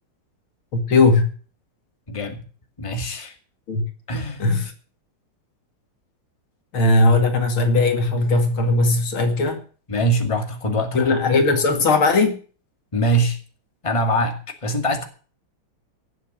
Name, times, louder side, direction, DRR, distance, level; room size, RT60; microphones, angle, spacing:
voice 1, 0.7-1.3 3.7-3.9 4.4-4.6 6.7-9.6 10.9-12.4, left 3 dB, 75° left, 3.1 m, -18 dB
voice 2, 2.1-2.4 2.8-3.4 4.1-4.5 9.9-11.2 12.9-13.4 13.8-15.0, right 1 dB, 15° left, 2.1 m, -23 dB
17.5 x 7.6 x 7.4 m
omnidirectional pair, 2.3 m